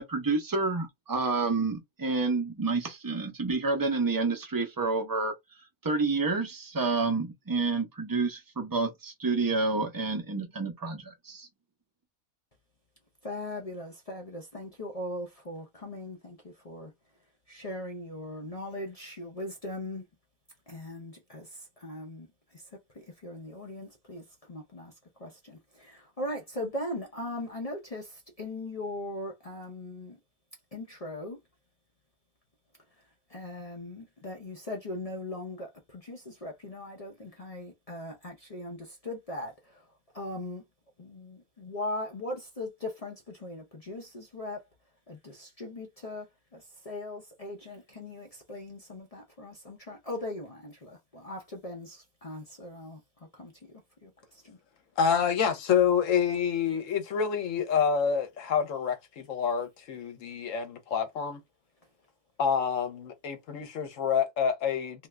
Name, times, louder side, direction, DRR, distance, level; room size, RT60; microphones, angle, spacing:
voice 1, 0.0-5.3 5.8-11.5, right 3 dB, 25° right, 0.5 m, -29 dB
voice 2, 13.2-16.9 17.5-20.1 20.7-22.7 22.9-24.9 25.2-30.2 30.7-31.4 33.3-40.6 41.0-44.6 45.1-46.3 46.5-53.0 53.3-54.6, left 1 dB, 45° left, 0.4 m, -39 dB
voice 3, 55.0-61.4 62.4-65.1, left 7 dB, 65° left, 1.1 m, -27 dB
2.7 x 2.3 x 3.2 m
omnidirectional pair, 1.5 m